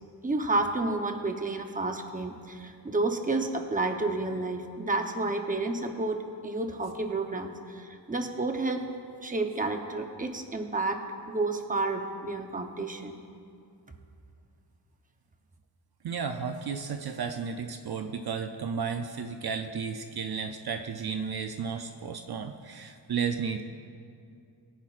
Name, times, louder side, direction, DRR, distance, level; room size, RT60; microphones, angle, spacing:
voice 1, 0.2-8.8 9.2-11.0 11.3-13.2, right 2 dB, 20° right, 4 dB, 0.8 m, -30 dB
voice 2, 16.0-23.6, right 6 dB, 60° right, 6 dB, 0.6 m, -33 dB
21.5 x 10.0 x 2.5 m, 2.4 s
wide cardioid pair, 125°, 43 cm